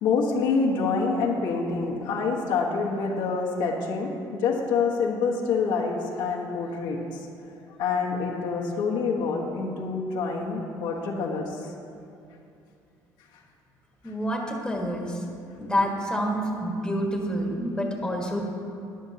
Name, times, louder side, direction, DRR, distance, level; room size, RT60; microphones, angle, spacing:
voice 1, 0.0-4.1 4.4-7.0 7.8-11.4, left 4 dB, 85° left, -3 dB, 1.5 m, -26 dB
voice 2, 14.0-15.2 15.6-18.4, equal, 10° left, -1 dB, 1.7 m, -28 dB
13.5 x 10.0 x 2.9 m, 2.6 s
cardioid pair, 100°, 8 cm